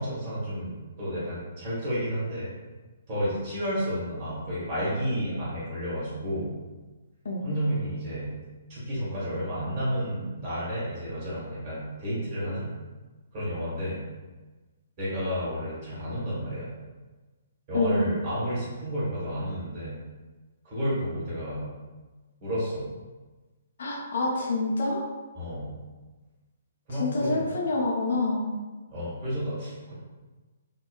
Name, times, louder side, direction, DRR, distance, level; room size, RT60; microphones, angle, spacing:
voice 1, 0.0-2.5 3.1-6.5 7.4-8.3 8.7-12.7 13.3-14.0 15.0-16.7 17.7-20.0 20.6-21.7 22.4-22.8 25.3-25.7 26.9-27.5 28.9-29.9, equal, 35° right, -9 dB, 1.3 m, -31 dB
voice 2, 17.7-18.0 23.8-25.1 26.9-28.5, left 2 dB, 55° left, -2 dB, 0.6 m, -27 dB
2.9 x 2.1 x 2.3 m, 1.3 s
figure-of-eight pair, 125°, 0 cm